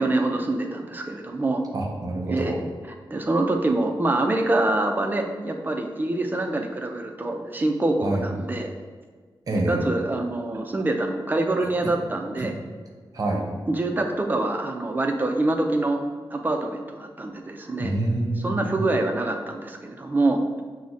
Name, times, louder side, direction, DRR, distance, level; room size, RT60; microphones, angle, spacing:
voice 1, 0.0-1.7 2.3-2.5 3.1-8.7 9.5-12.6 13.7-16.0 16.3-17.9 18.4-20.4, right 2 dB, 20° right, 3 dB, 0.4 m, -25 dB
voice 2, 1.7-2.6 8.0-8.2 9.5-9.9 11.8-11.9 12.4-12.5 13.1-13.4 17.8-18.8, right 2 dB, 45° right, 0 dB, 0.7 m, -26 dB
5.9 x 2.1 x 4.0 m, 1.5 s
wide cardioid pair, 175°, 9 cm